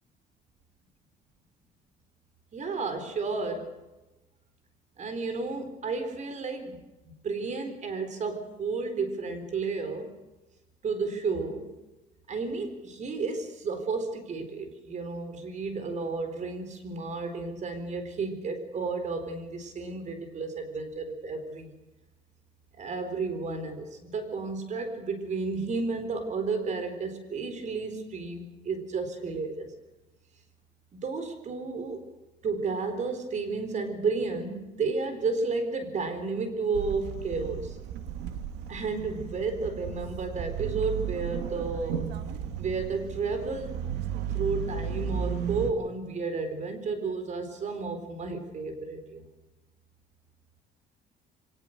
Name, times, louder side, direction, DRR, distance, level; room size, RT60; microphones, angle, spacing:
voice 1, 2.5-3.7 5.0-10.1 10.8-11.7 12.3-21.7 22.8-29.7 30.9-32.0 32.4-37.8 38.7-42.1 42.6-43.8 44.3-49.2, right 4 dB, 45° right, 9 dB, 4.2 m, -32 dB
sound 1, 36.7-45.7, right 8 dB, 90° right, 2.0 m, -34 dB
23.5 x 19.0 x 6.7 m, 1.1 s
cardioid pair, 110°, 17 cm